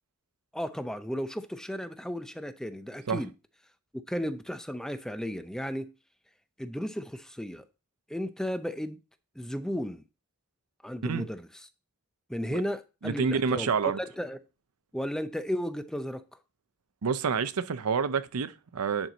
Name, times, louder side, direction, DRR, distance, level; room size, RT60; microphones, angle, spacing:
voice 1, 0.5-3.3 4.1-5.9 6.6-7.6 8.1-9.0 9.4-10.0 10.8-11.5 12.3-13.7 14.0-14.4 14.9-16.2, equal, 5° left, 0.5 m, -34 dB
voice 2, 13.0-14.0 17.0-19.1, right 5 dB, 90° right, 0.6 m, -28 dB
10.5 x 4.5 x 3.9 m
head